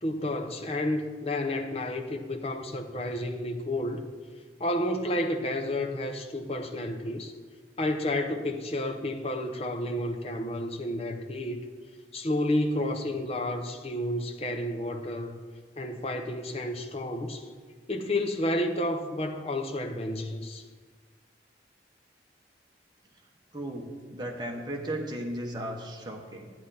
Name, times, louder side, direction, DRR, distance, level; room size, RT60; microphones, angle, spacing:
voice 1, 0.0-4.1 4.6-7.3 7.8-11.6 12.1-15.4 15.8-17.4 17.9-20.6, left 1 dB, 35° left, 5 dB, 0.8 m, -31 dB
voice 2, 23.5-26.5, right 1 dB, 25° right, 0 dB, 1.2 m, -35 dB
11.5 x 9.1 x 4.2 m, 1.5 s
head